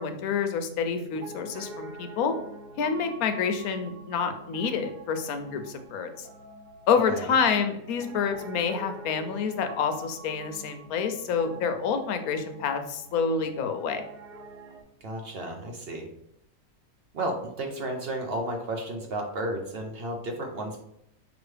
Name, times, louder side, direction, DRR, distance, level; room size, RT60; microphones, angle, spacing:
voice 1, 0.0-2.4 2.8-6.3 6.9-14.0, left 6 dB, 85° left, 7 dB, 1.1 m, -28 dB
Piano, 1.1-14.8, right 3 dB, 90° right, 1.2 m, -46 dB
voice 2, 15.0-16.1 17.1-20.8, right 1 dB, 55° right, 2 dB, 0.7 m, -33 dB
5.3 x 3.0 x 3.2 m, 0.77 s
omnidirectional pair, 1.5 m